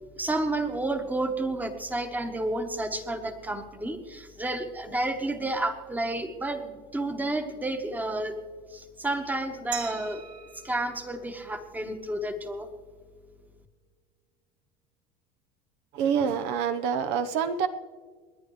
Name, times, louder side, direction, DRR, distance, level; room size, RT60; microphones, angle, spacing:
voice 1, 0.2-8.4 8.7-10.2 10.6-12.7, right 2 dB, 10° right, 7 dB, 1.2 m, -31 dB
Glass, 9.7-12.4, right 8 dB, 45° right, 1.7 m, -42 dB
voice 2, 15.9-17.7, right 7 dB, 65° right, 8 dB, 0.9 m, -26 dB
29.0 x 10.5 x 3.2 m, 1.5 s
supercardioid pair, 120°, 20 cm